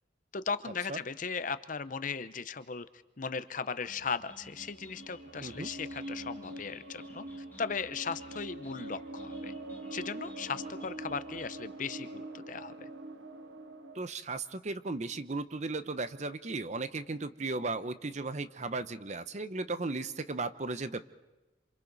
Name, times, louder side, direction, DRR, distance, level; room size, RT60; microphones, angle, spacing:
voice 1, 0.3-2.9 3.2-7.2 7.6-9.5 9.9-12.9, left 5 dB, 45° left, 13 dB, 0.8 m, -37 dB
sound 1, 3.8-11.5, left 1 dB, 10° left, 2.3 m, -55 dB
sound 2, 4.5-14.0, right 2 dB, 80° right, 1.5 m, -44 dB
voice 2, 13.9-21.1, right 3 dB, 40° right, 12 dB, 0.8 m, -36 dB
27.5 x 27.0 x 4.1 m, 1.1 s
head